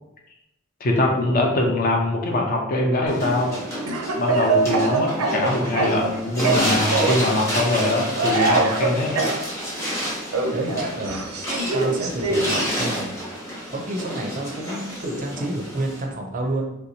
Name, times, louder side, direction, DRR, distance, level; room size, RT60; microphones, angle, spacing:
voice 1, 0.8-3.6 4.2-9.3, left 1 dB, 45° left, 1 dB, 0.5 m, -22 dB
sound 1, 3.1-16.0, equal, 15° left, 0.9 m, -29 dB
Speech / Cough, 3.9-6.1 6.4-7.3 8.2-9.4 10.3-12.6, right 3 dB, 90° right, 0.6 m, -23 dB
voice 2, 10.5-11.2 11.7-13.3 13.7-16.8, right 1 dB, 40° right, 2 dB, 0.5 m, -29 dB
3.3 x 2.8 x 2.7 m, 0.88 s
head